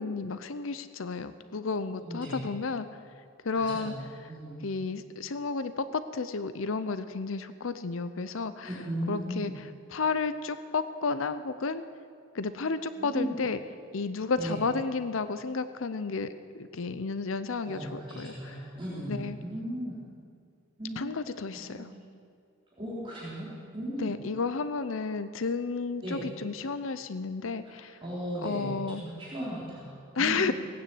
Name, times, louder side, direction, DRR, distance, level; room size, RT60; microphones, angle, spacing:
voice 1, 0.0-2.9 3.4-3.9 4.6-8.7 9.1-9.5 9.9-11.8 12.3-13.6 13.9-18.3 19.1-19.4 21.0-21.9 24.0-28.0 28.4-29.0 30.1-30.5, left 4 dB, 75° left, 12 dB, 0.6 m, -32 dB
voice 2, 2.0-2.5 3.5-4.7 8.6-9.5 12.9-13.4 14.4-14.6 17.6-20.0 20.8-21.1 21.5-21.8 22.8-23.5 23.7-24.1 26.0-26.2 27.8-30.5, right 1 dB, 25° right, -9 dB, 3.9 m, -37 dB
18.0 x 9.6 x 7.9 m, 2.3 s
head